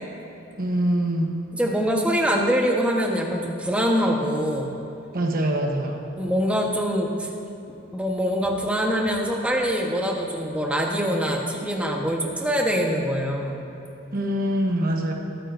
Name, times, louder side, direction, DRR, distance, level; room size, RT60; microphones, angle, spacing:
voice 1, 0.6-1.4 5.1-6.0 14.1-15.1, right 1 dB, 45° right, 1 dB, 1.1 m, -24 dB
voice 2, 1.5-4.8 6.2-7.3 7.9-13.6, equal, 5° right, 0 dB, 1.1 m, -24 dB
22.5 x 9.2 x 2.6 m, 2.9 s
head